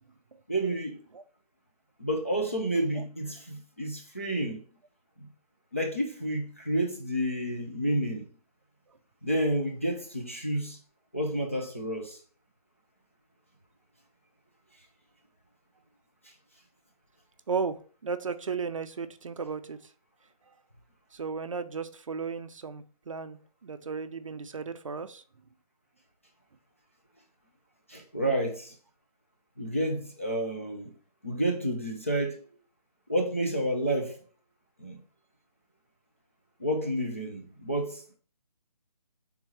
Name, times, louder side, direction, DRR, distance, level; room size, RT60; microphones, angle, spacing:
voice 1, 0.5-1.0 2.0-4.6 5.2-5.3 5.7-8.3 9.2-10.8 11.1-12.2 27.9-28.7 29.6-30.9 31.2-32.4 33.1-34.2 34.8-35.0 36.6-38.2, right 1 dB, 20° left, 0.4 m, -30 dB
voice 2, 17.5-19.9 21.1-25.2, right 5 dB, 55° right, 0.4 m, -35 dB
3.5 x 2.9 x 4.5 m
hypercardioid pair, 170°, 20 cm